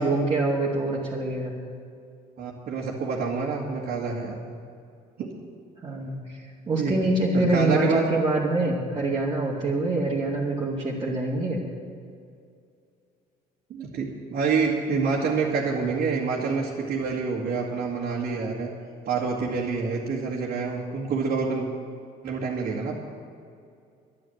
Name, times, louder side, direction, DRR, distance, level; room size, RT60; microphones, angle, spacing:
voice 1, 0.0-1.5 5.8-11.6, right 2 dB, 30° right, -6 dB, 2.1 m, -25 dB
voice 2, 2.4-4.5 5.2-5.3 6.8-7.0 7.3-8.1 13.7-18.7 19.1-21.7 22.2-23.0, right 4 dB, 65° right, -4 dB, 2.0 m, -27 dB
11.0 x 11.0 x 7.9 m, 2.4 s
cardioid pair, 110°, 17 cm